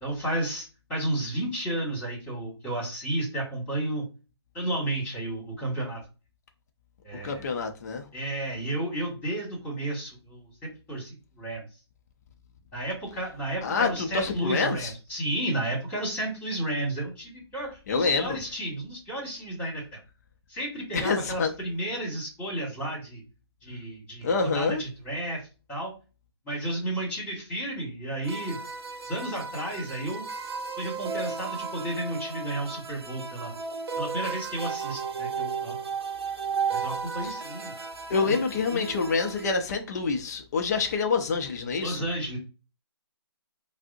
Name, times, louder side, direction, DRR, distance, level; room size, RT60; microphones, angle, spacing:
voice 1, 0.0-4.1 4.5-6.0 7.0-7.5 8.1-11.6 12.7-20.0 20.5-23.2 23.6-25.4 25.7-25.9 26.4-28.6 29.0-30.2 30.8-33.5 34.0-35.7 36.7-37.7 38.1-38.4 38.7-38.8 41.8-42.4, right 1 dB, 15° left, 1.6 m, -32 dB
voice 2, 7.1-8.1 13.6-14.9 17.9-18.4 20.9-21.5 24.2-24.8 37.2-37.3 38.1-42.1, left 4 dB, 40° left, 0.5 m, -27 dB
sound 1, 28.2-39.5, right 5 dB, 60° right, 0.6 m, -34 dB
3.4 x 2.0 x 2.6 m
hypercardioid pair, 155°, 14 cm